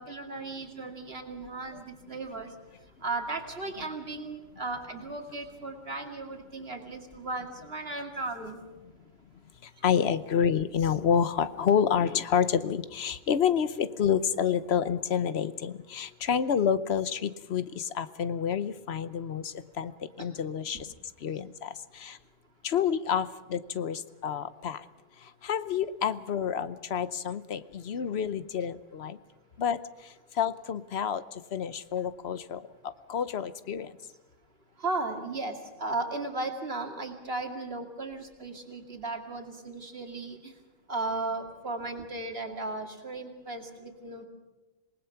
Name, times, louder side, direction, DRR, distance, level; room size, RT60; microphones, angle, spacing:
voice 1, 0.0-2.5 3.0-8.6 20.2-20.3 34.8-40.5 40.9-44.2, right 3 dB, 70° right, 4 dB, 2.6 m, -36 dB
voice 2, 9.6-19.9 20.2-20.9 21.2-22.2 22.6-24.8 25.2-29.2 29.6-29.8 30.3-32.6 33.1-33.9, left 8 dB, 80° left, 14 dB, 1.1 m, -29 dB
27.0 x 19.5 x 5.8 m, 1.2 s
omnidirectional pair, 1.0 m